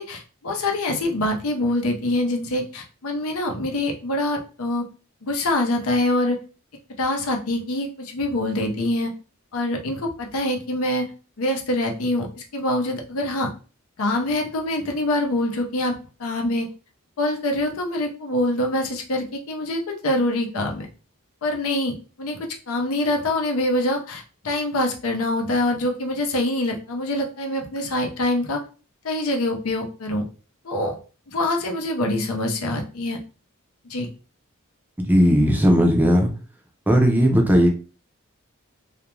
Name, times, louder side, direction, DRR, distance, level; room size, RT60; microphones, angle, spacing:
voice 1, 0.0-4.8 5.2-6.4 7.0-9.1 9.5-11.1 11.4-12.3 12.5-13.5 14.0-16.7 17.2-20.9 21.4-22.4 22.7-28.6 29.0-30.2 30.6-30.9 31.3-33.2 33.9-34.1, left 1 dB, 85° left, 2 dB, 0.6 m, -25 dB
voice 2, 35.1-36.3 36.9-37.7, equal, 10° right, 2 dB, 0.4 m, -16 dB
2.4 x 2.1 x 3.0 m, 0.36 s
head